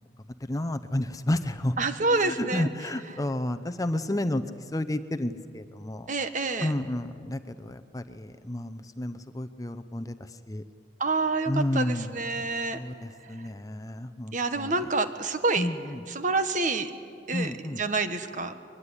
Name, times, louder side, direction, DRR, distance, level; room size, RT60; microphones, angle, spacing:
voice 1, 0.4-1.8 2.1-4.4 4.7-6.1 6.6-10.1 10.5-10.6 11.5-12.1 12.7-14.7 15.6-16.0 17.3-17.8, left 1 dB, 20° left, 10 dB, 0.7 m, -31 dB
voice 2, 1.8-2.7 3.1-3.2 6.1-6.7 11.0-12.8 13.3-13.5 14.3-15.7 16.1-16.9 17.3-18.6, right 3 dB, 45° right, 9 dB, 1.4 m, -28 dB
22.5 x 22.0 x 9.9 m, 2.3 s
head